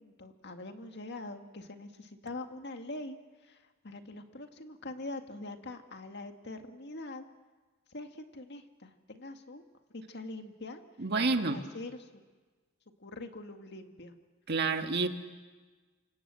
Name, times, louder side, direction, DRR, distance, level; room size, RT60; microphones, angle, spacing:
voice 1, 0.0-7.3 7.9-9.6 9.9-10.8 11.3-12.2 13.0-14.1, left 2 dB, 55° left, 6 dB, 1.9 m, -44 dB
voice 2, 11.0-11.6 14.5-15.1, right 3 dB, 55° right, 6 dB, 1.7 m, -28 dB
28.0 x 25.5 x 7.6 m, 1.3 s
head